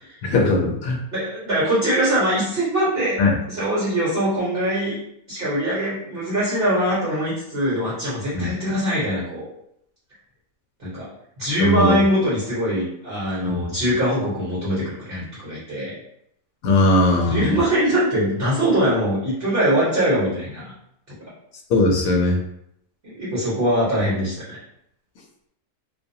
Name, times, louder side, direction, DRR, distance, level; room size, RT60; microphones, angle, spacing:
voice 1, 0.2-1.0 3.2-3.3 8.3-8.5 11.6-12.0 13.5-13.7 16.6-17.4 21.7-22.4, left 2 dB, 70° left, 0 dB, 0.9 m, -19 dB
voice 2, 1.1-5.0 5.3-9.5 10.8-11.1 11.4-15.9 17.2-20.7 21.2-21.3 23.0-24.6, equal, 45° right, -9 dB, 1.1 m, -22 dB
2.5 x 2.3 x 2.6 m, 0.76 s
omnidirectional pair, 1.6 m